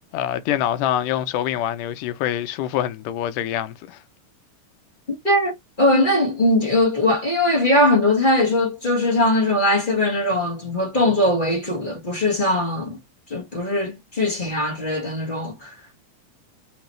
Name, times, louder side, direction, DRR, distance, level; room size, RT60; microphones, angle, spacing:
voice 1, 0.1-4.0, left 11 dB, 85° left, 2.2 m, -25 dB
voice 2, 5.1-13.0 13.3-15.7, left 1 dB, 30° left, 0.9 m, -20 dB
4.4 x 3.9 x 3.0 m
omnidirectional pair, 3.7 m